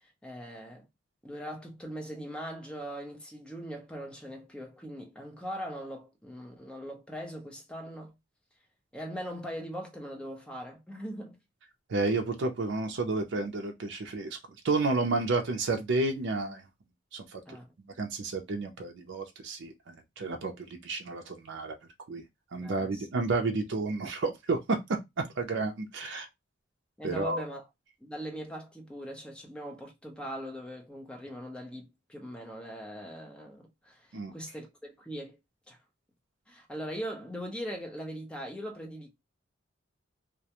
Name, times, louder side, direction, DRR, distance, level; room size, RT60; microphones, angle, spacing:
voice 1, 0.2-0.9 1.2-8.1 8.9-11.4 17.5-17.7 22.6-23.1 27.0-27.7 28.0-35.4 35.7-35.8 36.5-39.1, equal, 5° left, 0.6 m, -40 dB
voice 2, 11.9-14.3 14.6-16.6 17.1-17.2 18.0-21.8 22.1-22.2 22.5-24.6 25.4-26.3 27.0-27.4 34.1-34.3, right 3 dB, 65° right, 0.5 m, -31 dB
2.4 x 2.1 x 2.8 m
head